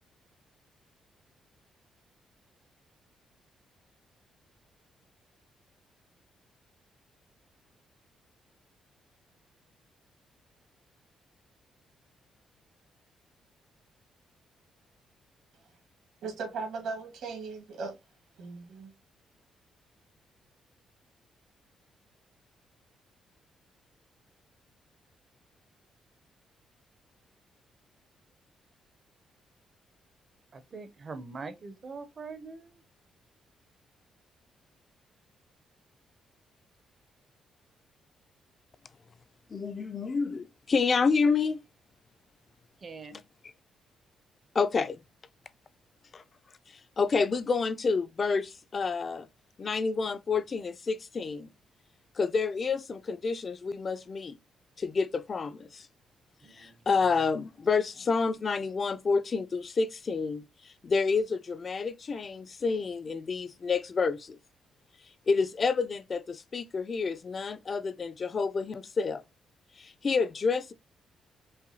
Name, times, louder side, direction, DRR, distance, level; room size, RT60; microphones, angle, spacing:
voice 1, 16.2-18.0 18.4-18.9, right 4 dB, 75° right, 1.6 m, -37 dB
voice 2, 30.5-32.8 42.8-43.2 56.4-56.9, right 4 dB, 30° right, 0.5 m, -43 dB
voice 3, 39.5-41.6 44.5-45.0 46.1-46.2 47.0-49.3 49.6-51.5 52.2-54.4 54.8-55.9 56.5-64.4 65.3-69.2 69.8-70.7, left 4 dB, 30° left, 0.3 m, -29 dB
5.5 x 2.2 x 2.7 m
cardioid pair, 170°, 0 cm